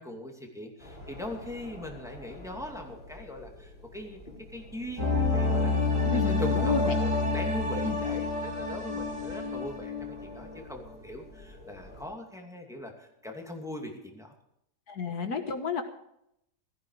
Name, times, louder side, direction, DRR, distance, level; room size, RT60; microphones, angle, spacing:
voice 1, 0.0-4.2 4.5-14.3, left 1 dB, ahead, 1 dB, 2.5 m, -41 dB
sound 1, 0.8-12.1, left 2 dB, 35° left, 3.4 m, -48 dB
sound 2, 5.0-10.6 10.9-11.0, left 3 dB, 70° right, 4.6 m, -28 dB
voice 2, 6.0-7.1 7.9-8.0 14.9-15.8, left 4 dB, 65° left, 6 dB, 1.8 m, -32 dB
16.5 x 14.0 x 4.8 m, 0.78 s
omnidirectional pair, 1.8 m